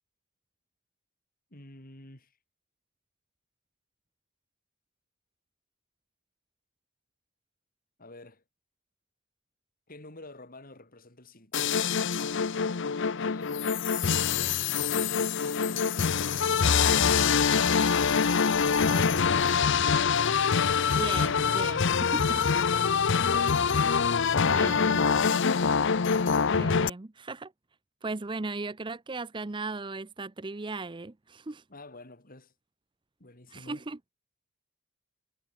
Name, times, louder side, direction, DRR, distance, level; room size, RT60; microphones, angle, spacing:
voice 1, 1.5-2.3 8.0-8.4 9.9-12.0 13.2-13.6 14.2-14.7 15.4-15.9 16.3-16.7 19.8-20.2 22.3-22.9 31.7-32.5 33.2-33.8, left 2 dB, 40° left, 4.0 m, -49 dB
sound 1, 11.5-26.9, left 6 dB, 60° left, 0.7 m, -25 dB
voice 2, 18.9-19.2 20.9-22.4 23.6-23.8 24.4-25.5 26.5-27.5 28.0-31.6 33.5-34.0, right 3 dB, 25° right, 0.6 m, -37 dB
head